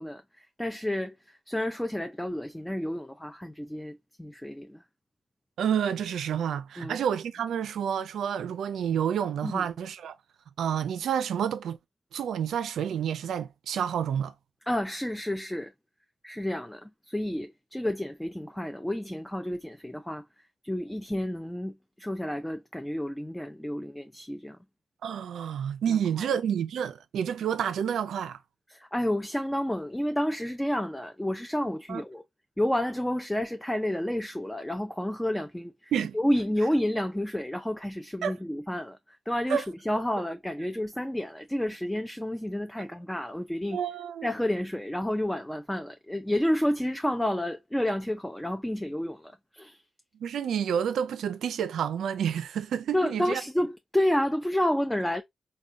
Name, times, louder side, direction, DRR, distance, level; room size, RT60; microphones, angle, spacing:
voice 1, 0.0-4.8 6.8-7.0 9.4-9.7 14.7-15.7 16.2-20.2 20.6-24.6 25.9-26.3 28.7-32.2 32.6-39.0 39.3-43.8 44.2-49.8 52.9-55.2, left 1 dB, 5° left, 0.3 m, -30 dB
voice 2, 5.6-10.1 10.6-11.8 12.1-14.3 25.0-28.4 31.9-32.0 35.9-36.2 38.2-38.3 39.5-39.6 43.7-44.3 50.2-53.4, right 8 dB, 90° right, 0.3 m, -29 dB
3.5 x 2.1 x 2.5 m
cardioid pair, 85°, 0 cm